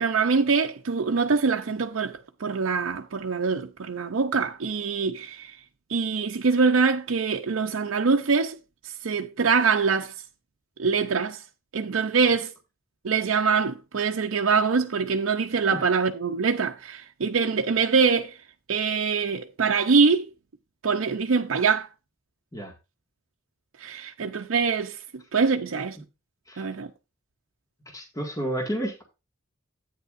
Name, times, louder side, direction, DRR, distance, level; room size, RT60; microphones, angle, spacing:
voice 1, 0.0-5.6 5.9-8.6 8.8-10.1 10.8-11.4 11.7-12.5 13.0-18.4 18.7-20.3 20.8-21.9 23.8-25.0 25.3-26.0 26.6-26.9, right 5 dB, 85° right, 0.6 m, -24 dB
voice 2, 27.9-29.0, right 1 dB, 15° left, 1.9 m, -30 dB
11.0 x 9.0 x 2.5 m
head